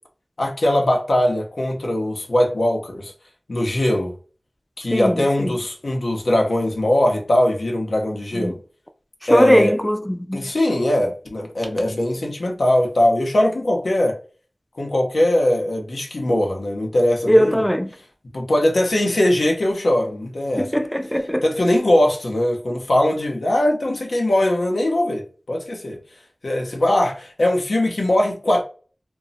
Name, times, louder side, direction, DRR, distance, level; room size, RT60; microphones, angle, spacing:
voice 1, 0.4-3.1 3.5-4.1 4.8-8.6 9.3-9.7 10.3-14.2 14.8-17.6 18.3-20.7 21.4-26.0 26.4-28.6, left 1 dB, 85° left, 0.6 m, -20 dB
voice 2, 4.9-5.6 8.3-8.5 9.3-10.5 17.3-17.9 20.6-21.4, equal, 10° left, 0.4 m, -19 dB
2.2 x 2.0 x 3.8 m
wide cardioid pair, 45°, 0 cm